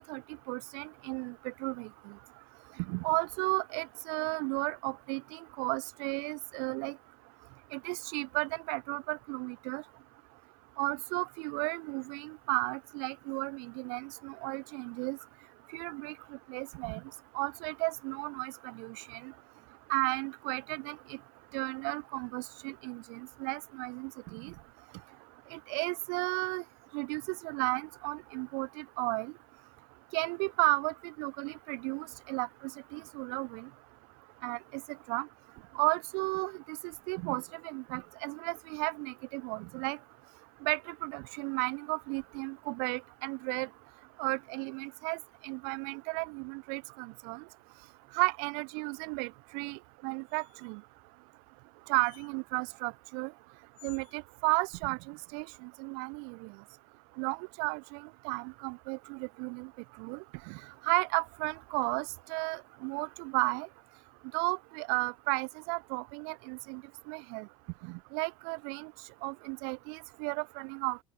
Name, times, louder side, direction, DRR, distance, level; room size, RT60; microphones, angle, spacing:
voice 1, 0.5-1.9 2.9-6.9 7.7-9.8 10.8-15.2 15.7-16.1 16.5-17.0 17.3-19.3 19.9-21.0 21.5-24.5 25.5-26.6 26.9-29.3 30.1-32.5 32.9-33.7 34.4-34.6 35.1-35.3 35.8-36.5 37.1-40.0 40.6-43.7 44.2-45.2 45.4-47.4 48.1-50.8 51.9-53.3 53.8-55.4 55.8-56.5 57.2-58.0 58.2-59.7 60.0-60.2 60.5-60.6 60.9-62.0 62.3-63.7 64.3-66.8 67.1-67.5 67.9-68.9 69.2-71.0, right 40 dB or more, 55° right, 0.5 m, -34 dB
sound 1, 50.3-50.8 51.9-52.3 53.7-54.2, left 21 dB, 65° left, 1.0 m, -56 dB
open air
figure-of-eight pair, 65°, 19 cm